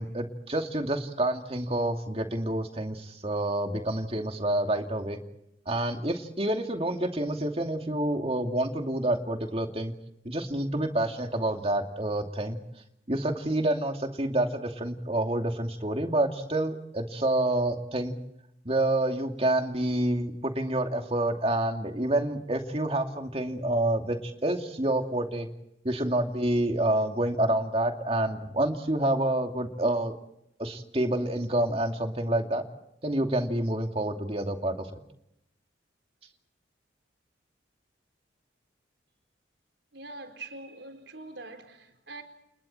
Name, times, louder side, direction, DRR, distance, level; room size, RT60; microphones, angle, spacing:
voice 1, 0.0-5.2 5.7-9.9 10.2-12.6 13.1-18.1 18.6-25.5 25.8-30.1 30.6-32.6 33.0-35.0, right 1 dB, 30° right, 2.6 m, -28 dB
voice 2, 39.9-42.2, right 2 dB, 75° right, 4.1 m, -43 dB
29.5 x 29.5 x 4.5 m
head